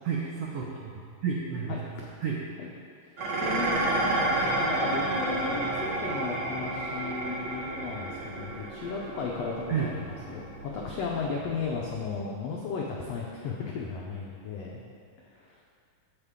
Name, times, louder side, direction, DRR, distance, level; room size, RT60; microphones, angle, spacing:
voice 1, 0.0-1.8 2.2-2.4 9.7-9.9, right 6 dB, 80° right, -4 dB, 1.4 m, -31 dB
Dishes pots and pans, 3.2-12.0, right 2 dB, 55° right, 1.4 m, -31 dB
voice 2, 3.4-14.8 15.2-15.6, left 5 dB, 80° left, -2 dB, 1.4 m, -35 dB
15.0 x 5.0 x 3.6 m, 2.4 s
omnidirectional pair, 3.8 m